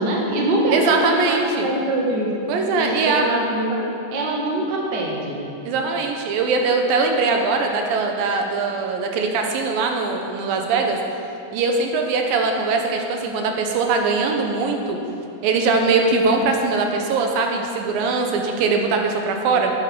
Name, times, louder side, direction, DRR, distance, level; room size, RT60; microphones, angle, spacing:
voice 1, 0.0-2.3 2.8-3.8 4.1-5.4, right 1 dB, 40° right, -2 dB, 1.7 m, -23 dB
voice 2, 0.7-1.7 2.5-3.3 5.6-11.0 11.5-15.0 15.4-19.7, right 4 dB, 85° right, 3 dB, 2.8 m, -21 dB
10.5 x 9.2 x 6.2 m, 2.7 s
omnidirectional pair, 4.0 m